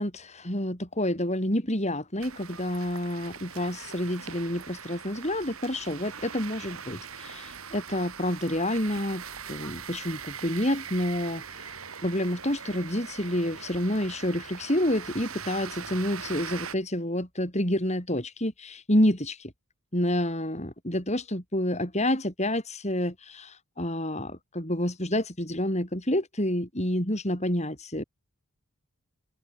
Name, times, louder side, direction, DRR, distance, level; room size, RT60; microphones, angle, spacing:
voice 1, 0.0-11.7 12.0-19.5 19.9-28.0, left 1 dB, 30° left, 7.8 m, -28 dB
sound 1, 2.2-16.8, right 6 dB, 85° right, 7.3 m, -41 dB
head